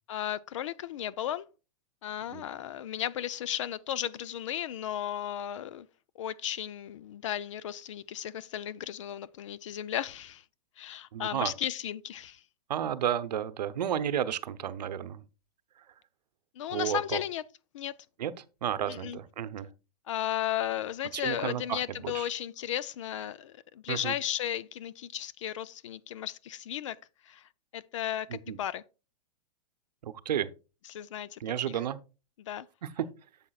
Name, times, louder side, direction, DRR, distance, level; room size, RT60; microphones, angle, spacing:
voice 1, 0.1-1.5 2.0-5.9 6.2-10.4 10.8-12.4 16.6-17.4 17.7-17.9 18.9-19.2 20.1-27.0 27.3-28.8 30.9-31.4 32.4-32.7, left 11 dB, 50° left, 0.4 m, -35 dB
voice 2, 11.1-11.5 12.7-15.2 16.7-17.2 18.2-19.7 21.1-22.3 23.9-24.2 28.3-28.6 30.0-30.5 31.4-32.0 32.8-33.1, right 10 dB, 80° right, 0.8 m, -32 dB
9.8 x 7.2 x 2.3 m
hypercardioid pair, 165°, 21 cm